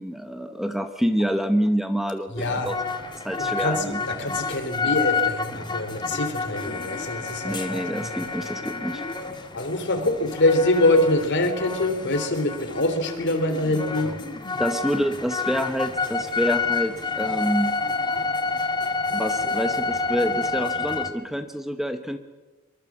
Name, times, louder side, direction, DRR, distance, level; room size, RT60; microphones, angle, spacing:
voice 1, 0.0-2.7 3.2-4.0 7.4-9.0 14.6-17.7 19.1-22.2, equal, ahead, 8 dB, 0.9 m, -27 dB
voice 2, 2.3-2.7 3.4-8.4 9.5-14.2, left 1 dB, 55° left, 7 dB, 3.4 m, -24 dB
sound 1, 2.4-21.1, left 4 dB, 20° left, 1.7 m, -29 dB
24.0 x 23.5 x 7.4 m, 1.2 s
head